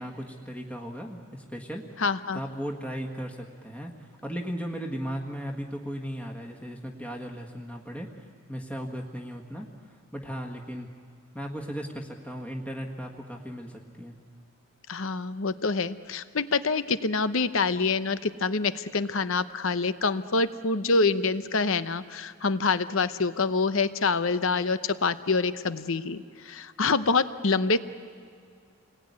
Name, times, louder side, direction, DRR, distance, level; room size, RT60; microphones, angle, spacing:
voice 1, 0.0-2.0 2.3-10.9 11.3-14.1, equal, 5° left, 1 dB, 1.6 m, -37 dB
voice 2, 2.0-2.4 14.9-27.8, left 4 dB, 65° left, 13 dB, 0.8 m, -26 dB
29.0 x 21.0 x 9.6 m, 2.2 s
head